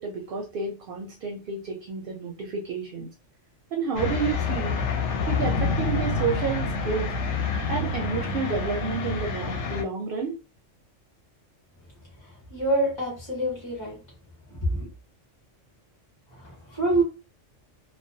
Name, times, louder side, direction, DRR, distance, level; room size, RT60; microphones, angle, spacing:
voice 1, 0.0-3.1 3.7-4.8 5.3-7.1 7.7-10.4, right 5 dB, 60° right, 1 dB, 0.6 m, -30 dB
sound 1, 4.0-9.8, left 3 dB, 70° left, 0.8 m, -27 dB
voice 2, 12.5-14.0 14.6-14.9 16.7-17.0, right 1 dB, 25° left, -3 dB, 0.9 m, -25 dB
2.2 x 2.2 x 2.6 m, 0.31 s
omnidirectional pair, 1.3 m